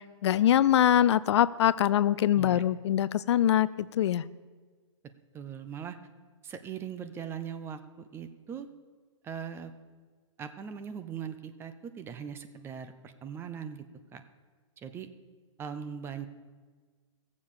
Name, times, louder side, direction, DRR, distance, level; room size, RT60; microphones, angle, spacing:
voice 1, 0.0-4.2, left 11 dB, 60° left, 18 dB, 0.5 m, -24 dB
voice 2, 5.3-6.0 6.4-8.7 9.2-9.7 10.4-13.8 14.1-14.2 14.8-15.1 15.6-16.3, right 7 dB, 15° right, 10 dB, 0.6 m, -40 dB
16.0 x 7.4 x 6.7 m, 1.5 s
hypercardioid pair, 145°, 16 cm